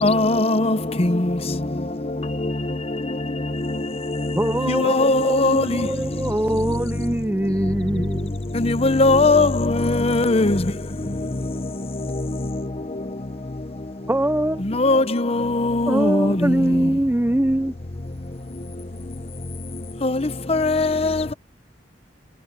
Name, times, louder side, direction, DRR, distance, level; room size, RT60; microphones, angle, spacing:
voice 1, 0.0-1.4 2.4-2.5 4.7-5.8 8.5-10.6 14.7-16.6 20.0-21.2, left 2 dB, 35° left, 0.9 m, -19 dB
voice 2, 4.3-8.3 14.1-14.6 15.9-17.7, right 1 dB, 10° right, 0.5 m, -23 dB
voice 3, 10.9-12.3, equal, 70° left, 1.6 m, -49 dB
head